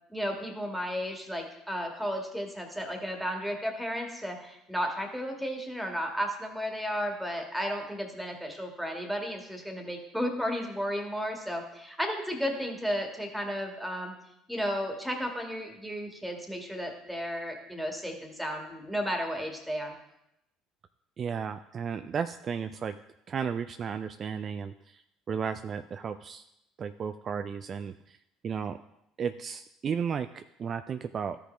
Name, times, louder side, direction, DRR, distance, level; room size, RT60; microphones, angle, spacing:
voice 1, 0.1-14.1 14.5-20.0, equal, ahead, 2 dB, 1.9 m, -33 dB
voice 2, 21.2-23.0 23.3-25.0 25.3-26.4 26.8-28.2 28.4-28.8 29.2-31.4, right 6 dB, 45° right, 10 dB, 0.3 m, -34 dB
13.0 x 5.1 x 3.3 m, 0.82 s
hypercardioid pair, 65°, 0 cm